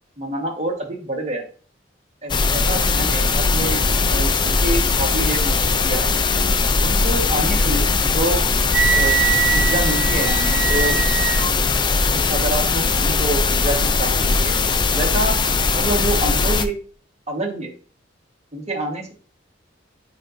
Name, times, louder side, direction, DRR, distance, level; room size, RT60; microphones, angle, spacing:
voice 1, 0.2-1.4 2.2-3.8 4.1-6.5 6.8-8.4 8.9-9.1 9.5-11.0 12.1-14.6 14.9-15.4 15.7-16.7 17.3-17.7 18.5-19.1, right 1 dB, 35° right, 1 dB, 1.4 m, -27 dB
sound 1, 2.3-16.6, left 4 dB, 25° left, 0.4 m, -19 dB
Wind instrument woodwind instrument, 8.7-11.5, right 9 dB, 70° right, 0.6 m, -22 dB
7.5 x 5.3 x 2.6 m, 0.40 s
head